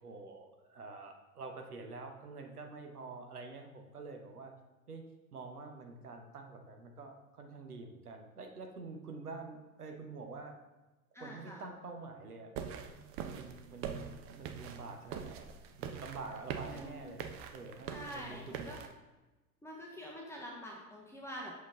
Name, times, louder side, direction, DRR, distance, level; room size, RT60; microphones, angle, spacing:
voice 1, 0.0-4.5 4.9-5.0 5.3-10.6 11.2-12.5 13.3-17.2 17.5-18.8, right 3 dB, 90° right, 4 dB, 0.9 m, -47 dB
voice 2, 11.1-11.6 16.7-17.0 17.9-18.8 19.6-21.5, equal, 5° left, -3 dB, 0.7 m, -46 dB
sound 1, 12.6-18.9, right 7 dB, 30° right, 0.5 m, -44 dB
6.0 x 5.1 x 3.6 m, 1.1 s
figure-of-eight pair, 85°, 44 cm